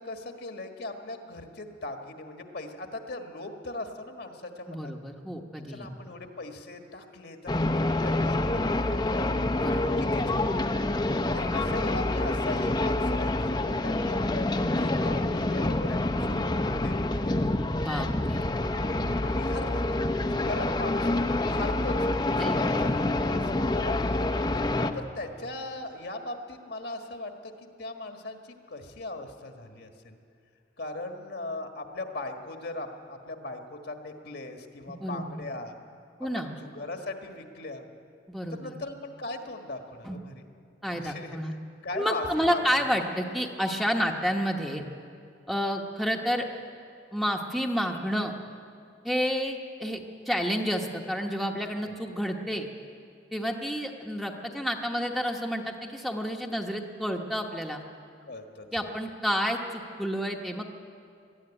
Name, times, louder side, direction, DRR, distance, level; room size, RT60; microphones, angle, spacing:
voice 1, 0.0-4.9 5.7-9.3 9.8-10.7 11.3-17.3 19.2-24.3 24.9-30.2 30.8-35.8 36.3-37.9 38.5-40.5 40.8-41.6 41.8-42.9 51.8-51.9 58.2-58.9, left 2 dB, 60° left, 4 dB, 1.6 m, -39 dB
voice 2, 4.7-5.9 9.5-9.8 17.8-18.5 22.4-22.8 35.0-35.4 36.2-36.6 38.3-38.7 40.0-40.2 40.8-41.5 41.9-44.9 45.5-46.4 47.1-48.3 49.0-52.7 53.3-57.8 58.7-60.6, equal, ahead, 1 dB, 1.1 m, -30 dB
sound 1, 7.5-24.9, left 2 dB, 25° left, 0.7 m, -27 dB
20.0 x 13.0 x 10.0 m, 2.4 s
head